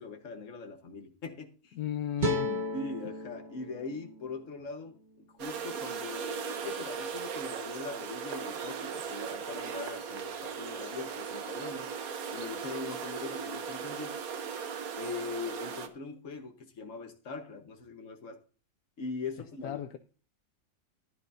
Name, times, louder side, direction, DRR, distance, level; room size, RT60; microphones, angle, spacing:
voice 1, 0.0-1.7 2.7-11.9 12.3-14.2 15.0-18.4 19.0-19.8, left 4 dB, 55° left, 1.6 m, -41 dB
voice 2, 1.8-2.7 19.6-20.0, left 10 dB, 75° left, 1.1 m, -35 dB
sound 1, 2.2-5.4, left 1 dB, 30° right, 1.3 m, -35 dB
sound 2, 5.4-15.9, right 6 dB, 70° right, 1.4 m, -38 dB
14.0 x 11.0 x 2.7 m
omnidirectional pair, 1.7 m